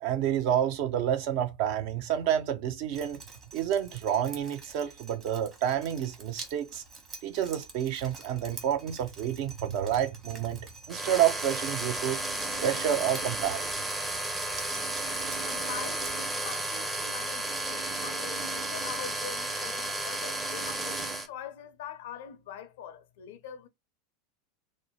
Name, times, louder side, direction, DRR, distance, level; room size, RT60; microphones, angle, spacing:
voice 1, 0.0-3.2 3.5-6.8 7.2-12.2 12.6-13.7, right 10 dB, 55° right, 0.6 m, -29 dB
Drip, 2.9-16.1, right 4 dB, 35° right, 1.1 m, -48 dB
sound 1, 10.9-21.3, right 2 dB, 10° right, 0.6 m, -33 dB
Bowed string instrument, 11.3-16.7, left 1 dB, 85° right, 1.2 m, -47 dB
voice 2, 15.4-23.7, left 8 dB, 65° left, 0.5 m, -43 dB
2.5 x 2.0 x 3.0 m
figure-of-eight pair, 85°, 0 cm